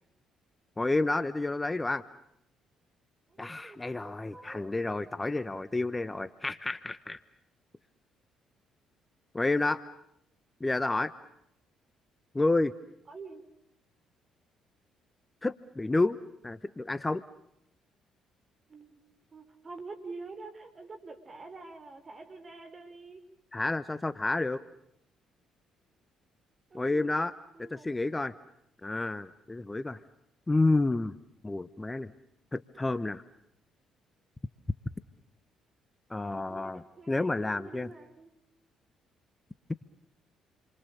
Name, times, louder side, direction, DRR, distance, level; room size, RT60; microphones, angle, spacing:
voice 1, 0.8-2.0 3.4-7.2 9.3-9.8 10.6-11.1 12.3-12.7 15.4-16.2 16.4-17.2 23.5-24.6 26.7-27.3 27.6-28.3 28.8-30.0 30.5-31.2 31.4-32.1 32.5-33.2 36.1-37.9, left 2 dB, 20° left, 15 dB, 1.0 m, -30 dB
voice 2, 3.3-4.7 13.1-13.4 18.7-19.0 19.3-23.2 26.7-27.3 27.5-27.9 36.2-38.3, right 3 dB, 40° right, 7 dB, 5.5 m, -47 dB
29.5 x 25.0 x 6.9 m, 0.76 s
hypercardioid pair, 55°, 0 cm